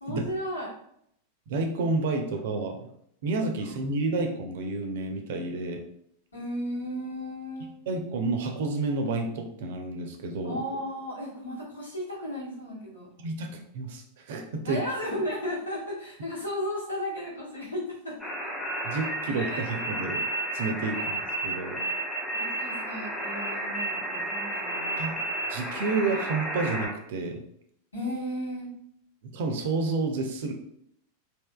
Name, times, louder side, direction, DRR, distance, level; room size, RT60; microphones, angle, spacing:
voice 1, 0.0-0.7 3.6-3.7 6.3-7.7 10.4-13.1 14.6-18.3 19.3-19.7 20.9-21.1 21.4-21.9 22.3-25.1 27.9-28.7, equal, 80° left, -6 dB, 1.2 m, -35 dB
voice 2, 1.5-2.9 3.2-5.8 7.9-10.6 13.2-14.8 18.8-20.2 20.5-21.8 25.0-25.1 25.5-27.4 29.2-30.5, right 3 dB, 55° right, 4 dB, 0.5 m, -30 dB
sound 1, 18.2-26.9, right 1 dB, 10° left, 1.1 m, -32 dB
3.5 x 2.6 x 2.2 m, 0.71 s
figure-of-eight pair, 90°, 0 cm